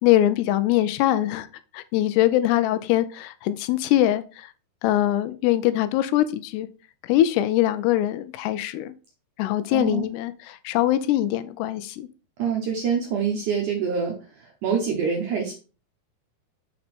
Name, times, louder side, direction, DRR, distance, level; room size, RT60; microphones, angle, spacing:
voice 1, 0.0-1.5 1.7-4.5 4.8-6.7 7.0-8.9 9.4-12.1, left 13 dB, 85° left, 2.7 m, -22 dB
voice 2, 9.7-10.1 12.4-15.5, right 6 dB, 75° right, 1.8 m, -26 dB
6.6 x 4.3 x 4.2 m
omnidirectional pair, 4.8 m